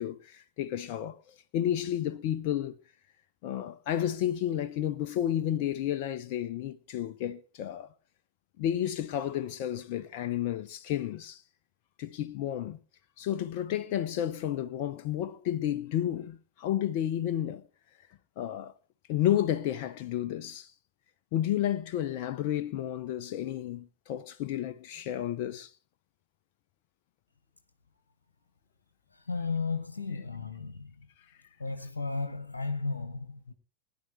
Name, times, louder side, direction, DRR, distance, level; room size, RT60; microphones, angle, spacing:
voice 1, 0.0-2.8 3.4-7.9 8.6-11.4 12.0-12.8 13.2-17.6 18.4-18.7 19.1-20.7 21.3-25.7, left 11 dB, 45° left, 0.7 m, -31 dB
voice 2, 29.1-31.1 31.6-33.5, left 4 dB, 75° left, 1.3 m, -34 dB
20.5 x 10.5 x 2.8 m
figure-of-eight pair, 90°, 0 cm